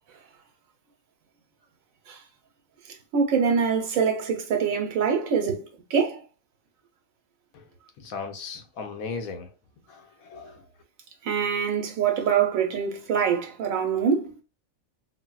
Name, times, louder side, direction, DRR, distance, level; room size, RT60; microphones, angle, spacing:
voice 1, 3.1-5.6 5.9-6.2 11.2-14.3, right 6 dB, 80° right, 1.1 m, -24 dB
voice 2, 8.0-9.5 9.9-10.7, left 4 dB, 85° left, 1.1 m, -37 dB
3.8 x 2.1 x 2.3 m
omnidirectional pair, 1.4 m